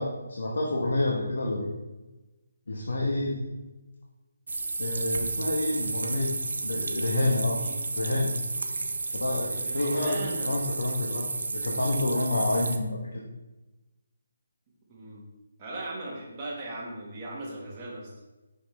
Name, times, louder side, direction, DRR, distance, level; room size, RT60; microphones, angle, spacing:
voice 1, 0.0-1.7 2.7-3.4 4.8-6.3 6.6-7.6 8.0-8.3 9.1-13.2, left 2 dB, 80° left, -2 dB, 1.1 m, -28 dB
sound 1, 4.5-12.8, right 3 dB, 75° right, 0.6 m, -32 dB
voice 2, 9.5-10.6 14.9-15.2 15.6-18.1, right 2 dB, 25° right, -4 dB, 1.6 m, -38 dB
6.1 x 5.1 x 3.4 m, 1.1 s
hypercardioid pair, 165°, 0 cm